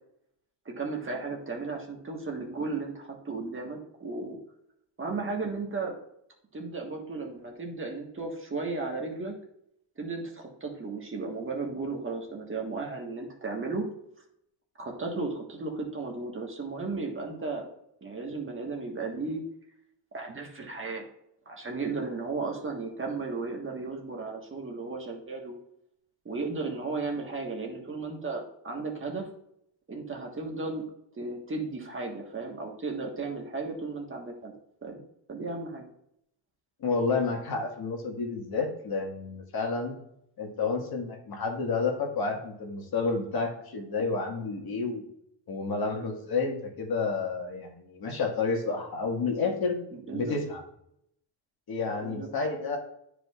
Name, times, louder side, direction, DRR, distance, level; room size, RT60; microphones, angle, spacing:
voice 1, 0.6-4.4 5.0-5.9 6.5-9.3 10.0-13.8 14.8-17.7 18.0-19.4 20.1-21.0 21.4-25.6 26.2-29.3 29.9-30.8 31.1-34.5 34.8-35.0 35.3-35.8 49.9-50.4 52.0-52.3, right 3 dB, 30° right, 1 dB, 1.4 m, -35 dB
voice 2, 36.8-40.0 40.4-45.0 45.5-49.8 50.1-50.6 51.7-52.8, left 4 dB, 55° left, 1 dB, 1.7 m, -30 dB
12.0 x 5.0 x 2.4 m, 0.75 s
cardioid pair, 150°, 44 cm